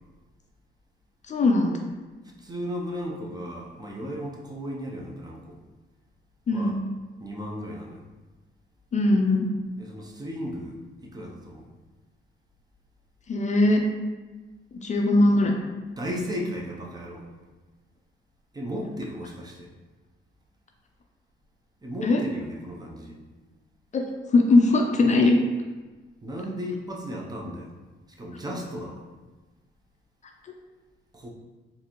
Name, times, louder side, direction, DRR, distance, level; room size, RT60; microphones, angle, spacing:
voice 1, 1.3-1.7 6.5-6.8 8.9-9.5 13.3-13.8 14.8-15.5 22.0-22.2 23.9-24.0 24.3-25.4, left 2 dB, 35° left, 2 dB, 0.4 m, -20 dB
voice 2, 2.2-5.6 6.5-6.8 7.2-8.0 9.8-11.7 16.0-17.3 18.5-19.7 21.8-23.2 26.2-27.7 28.1-29.0 31.1-31.3, equal, 20° right, -1 dB, 0.6 m, -35 dB
3.8 x 2.6 x 2.9 m, 1.2 s
cardioid pair, 90°, 20 cm